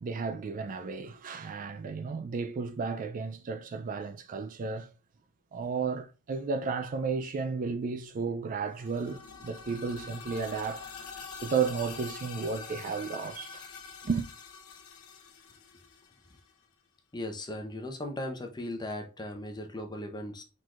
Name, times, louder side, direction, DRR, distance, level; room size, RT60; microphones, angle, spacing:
voice 1, 0.0-4.9 5.5-10.9 11.4-13.7 14.0-14.3, right 5 dB, 35° right, 0.3 m, -33 dB
sound 1, 8.7-16.5, left 5 dB, 75° left, 0.8 m, -45 dB
voice 2, 17.1-20.4, left 1 dB, 20° left, 0.7 m, -37 dB
4.5 x 4.0 x 2.4 m
head